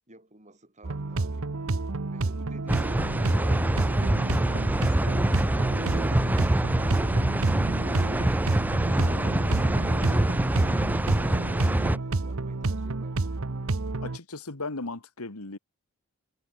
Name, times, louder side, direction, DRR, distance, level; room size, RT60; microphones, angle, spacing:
voice 1, 0.1-1.5 10.6-13.4, right 2 dB, 30° right, 6.1 m, -52 dB
sound 1, 0.8-14.2, right 3 dB, 65° right, 1.0 m, -30 dB
sound 2, 2.7-12.0, right 1 dB, 5° right, 0.3 m, -25 dB
voice 2, 14.0-15.6, left 3 dB, 80° left, 2.1 m, -36 dB
head